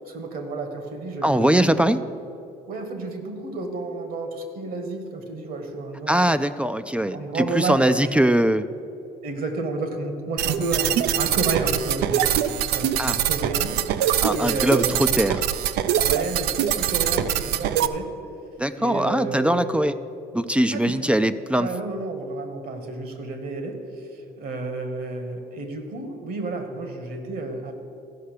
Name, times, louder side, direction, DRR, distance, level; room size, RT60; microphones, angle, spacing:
voice 1, 0.0-1.8 2.7-6.4 7.1-8.1 9.2-12.3 12.7-15.1 16.0-18.1 18.7-19.8 20.7-21.1 21.6-27.8, right 3 dB, 60° right, 6 dB, 1.6 m, -31 dB
voice 2, 1.2-2.0 6.1-8.6 13.0-13.2 14.2-15.4 18.6-19.9 20.3-21.7, right 1 dB, 5° right, 12 dB, 0.3 m, -21 dB
sound 1, 10.4-17.9, right 10 dB, 80° right, 0.5 m, -23 dB
14.5 x 5.6 x 6.6 m, 2.7 s
cardioid pair, 110°, 17 cm